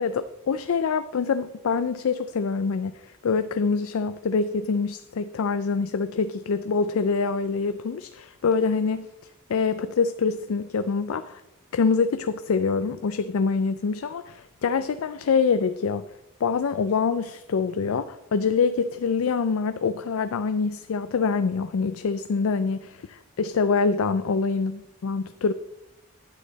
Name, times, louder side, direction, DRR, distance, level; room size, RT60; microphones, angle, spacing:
voice 1, 0.0-9.1 9.5-11.4 11.7-16.1 16.4-25.5, left 5 dB, 75° left, 12 dB, 0.4 m, -25 dB
9.9 x 8.4 x 4.0 m, 0.92 s
head